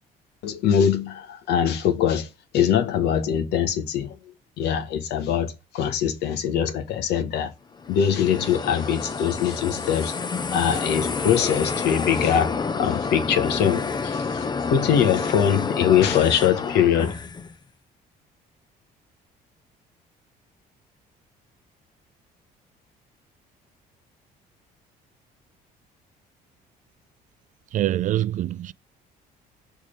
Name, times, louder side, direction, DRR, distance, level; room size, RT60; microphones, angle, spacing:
voice 1, 0.4-2.3 2.5-4.2 4.6-7.5 7.9-10.2 10.5-17.2, left 8 dB, 75° left, 1.2 m, -22 dB
sound 1, 7.8-17.5, left 5 dB, 25° left, 0.6 m, -29 dB
voice 2, 27.7-28.7, right 13 dB, 50° right, 0.4 m, -24 dB
6.6 x 3.5 x 5.1 m
cardioid pair, 110°, 17 cm